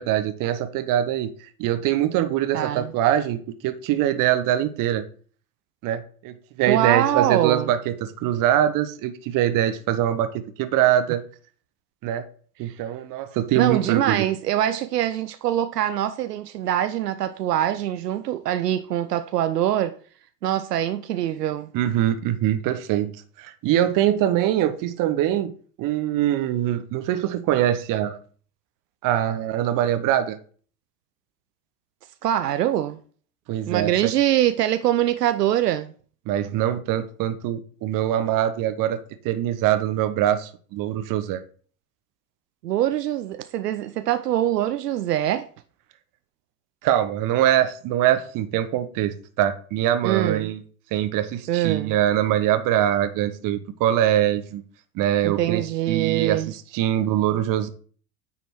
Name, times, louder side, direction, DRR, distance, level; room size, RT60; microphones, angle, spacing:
voice 1, 0.0-5.0 5.8-11.2 12.0-12.2 12.6-14.2 21.7-23.1 23.4-25.5 25.8-28.2 29.0-30.4 33.5-34.1 36.3-39.0 39.2-41.4 46.8-50.6 50.9-54.6 54.9-57.7, right 11 dB, 40° right, 1.1 m, -23 dB
voice 2, 2.5-2.9 6.6-7.7 12.7-12.8 13.5-19.9 20.4-21.7 32.2-33.0 33.7-35.9 42.6-45.5 50.0-50.5 51.5-51.9 55.2-56.5, right 12 dB, 75° right, 0.6 m, -23 dB
9.4 x 4.1 x 4.5 m
figure-of-eight pair, 75°, 48 cm